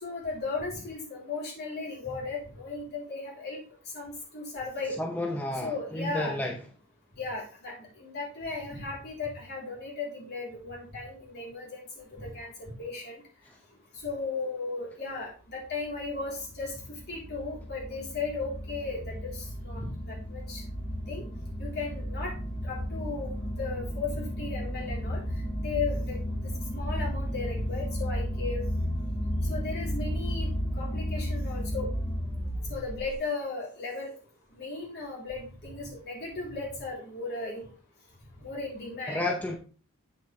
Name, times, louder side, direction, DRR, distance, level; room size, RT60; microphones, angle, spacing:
voice 1, 0.0-3.6 3.9-5.0 5.6-6.4 7.2-13.2 14.0-16.7 17.1-20.6 21.1-21.3 21.6-22.3 22.6-25.2 25.6-26.2 26.7-28.7 29.4-30.5 30.8-31.9 32.6-34.1 34.6-37.7 38.4-39.3, left 3 dB, 50° left, -3 dB, 3.4 m, -36 dB
voice 2, 5.0-6.6 13.5-13.6 39.1-39.6, left 1 dB, 10° left, 2 dB, 0.7 m, -31 dB
sound 1, 15.6-33.2, equal, 25° left, 1.9 m, -33 dB
8.1 x 6.8 x 3.2 m, 0.37 s
head